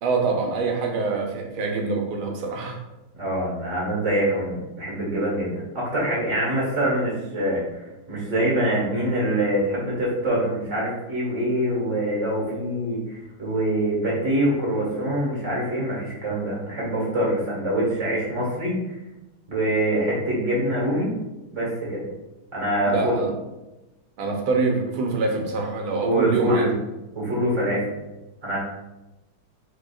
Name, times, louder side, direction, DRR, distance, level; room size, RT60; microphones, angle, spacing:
voice 1, 0.0-2.8 22.9-23.3 24.2-26.7, right 4 dB, 85° right, 1 dB, 1.7 m, -25 dB
voice 2, 3.1-18.9 19.5-21.1 21.5-22.1 22.5-23.1 26.0-26.7 27.2-27.9 28.4-28.6, right 1 dB, 40° right, -5 dB, 1.9 m, -24 dB
4.9 x 4.5 x 2.4 m, 1.0 s
omnidirectional pair, 2.2 m